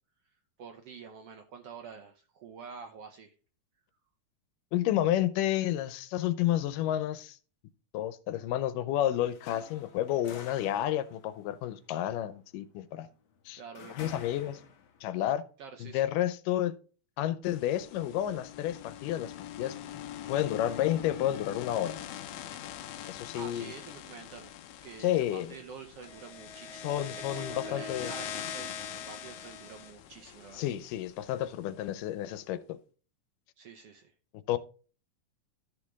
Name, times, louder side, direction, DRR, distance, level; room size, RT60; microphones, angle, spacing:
voice 1, 0.6-3.3 13.6-14.1 15.6-16.0 23.3-24.6 24.8-30.6 33.6-34.1, right 6 dB, 70° right, 1.5 m, -47 dB
voice 2, 4.7-7.4 7.9-13.1 13.5-13.6 13.9-14.6 15.0-15.4 15.8-16.7 17.2-19.8 20.3-22.0 23.1-23.7 25.0-25.5 26.8-28.1 30.5-32.8 34.5-34.6, left 12 dB, 90° left, 2.4 m, -30 dB
sound 1, 9.2-15.1, left 6 dB, 55° left, 1.8 m, -50 dB
sound 2, 17.4-31.6, left 8 dB, 70° left, 2.0 m, -42 dB
13.0 x 5.3 x 3.5 m
omnidirectional pair, 3.7 m